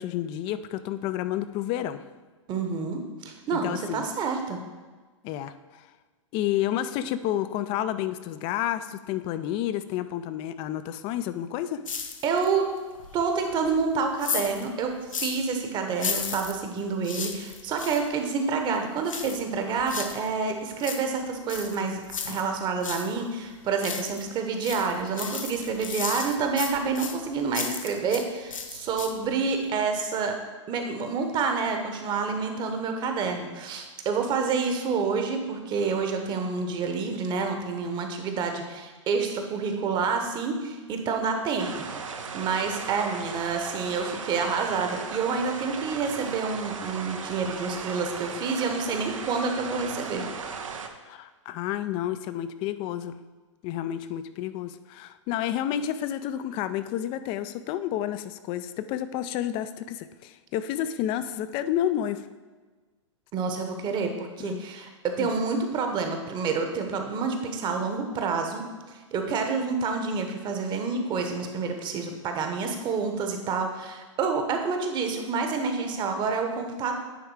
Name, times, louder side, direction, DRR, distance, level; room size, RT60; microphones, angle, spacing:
voice 1, 0.0-2.0 3.5-4.1 5.2-5.5 6.3-11.8 51.0-53.2 53.6-62.2 64.4-64.6 65.2-65.3, left 11 dB, 30° left, 12 dB, 0.4 m, -30 dB
voice 2, 2.5-4.6 12.2-12.7 13.1-22.0 22.3-30.4 30.7-41.9 42.3-50.2 63.3-68.6 69.1-76.9, right 5 dB, 30° right, 5 dB, 1.0 m, -28 dB
sound 1, 11.9-12.6 12.9-15.5 15.9-18.1 19.1-20.3 20.6-23.1 23.5-24.3 24.6-28.3 28.5-29.3 29.6-29.7, left 6 dB, 90° left, 0.8 m, -35 dB
sound 2, 41.6-50.9, right 5 dB, 85° right, 0.8 m, -37 dB
9.5 x 3.5 x 4.8 m, 1.4 s
hypercardioid pair, 125°, 16 cm